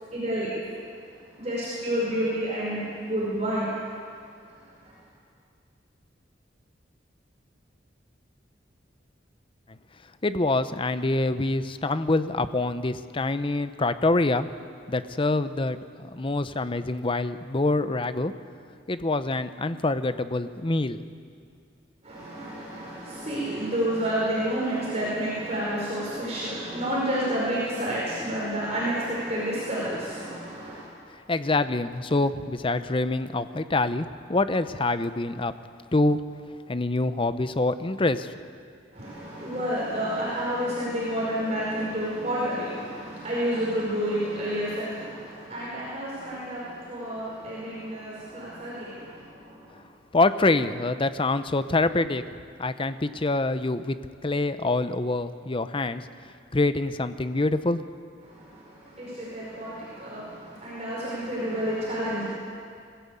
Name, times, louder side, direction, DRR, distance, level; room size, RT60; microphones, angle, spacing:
voice 1, 0.0-0.5 1.4-3.7 4.5-4.6 4.8-4.9 22.0-30.8 38.9-49.8 58.2-62.3, equal, 35° right, -7 dB, 5.2 m, -30 dB
voice 2, 10.2-14.5 14.9-15.8 16.1-18.3 18.9-21.0 31.3-35.5 35.9-36.2 36.7-38.3 50.1-52.2 52.6-54.0 54.2-56.1 56.5-57.8, left 2 dB, 30° left, 12 dB, 0.7 m, -25 dB
21.5 x 15.0 x 8.5 m, 2.2 s
head